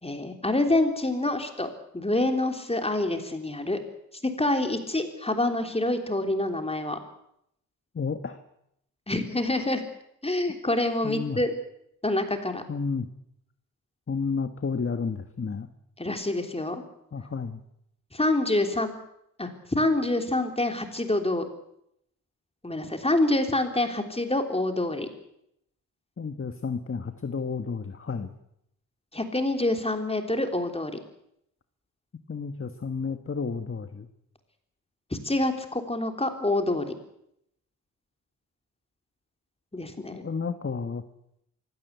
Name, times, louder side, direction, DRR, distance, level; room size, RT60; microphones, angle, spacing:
voice 1, 0.0-3.8 4.4-7.0 9.1-9.8 10.2-11.5 12.0-12.6 16.0-16.8 18.1-18.9 19.4-21.4 22.6-25.1 29.1-31.0 35.2-36.9 39.7-40.2, left 2 dB, 15° left, 5 dB, 3.4 m, -26 dB
voice 2, 7.9-8.4 11.0-11.4 12.7-13.1 14.1-15.7 17.1-17.6 26.2-28.3 32.3-34.1 40.1-41.0, left 5 dB, 35° left, 8 dB, 1.5 m, -31 dB
23.5 x 17.0 x 8.2 m, 0.77 s
cardioid pair, 80°, 35 cm